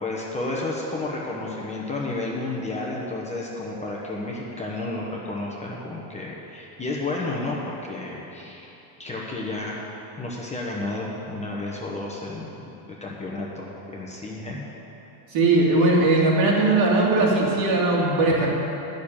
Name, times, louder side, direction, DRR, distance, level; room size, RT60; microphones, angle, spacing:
voice 1, 0.0-9.8 10.2-12.6 13.0-14.6, left 2 dB, 15° left, -4 dB, 0.9 m, -31 dB
voice 2, 15.3-18.5, right 2 dB, 65° right, -4 dB, 2.9 m, -19 dB
11.0 x 6.6 x 8.7 m, 2.9 s
cardioid pair, 175°, 49 cm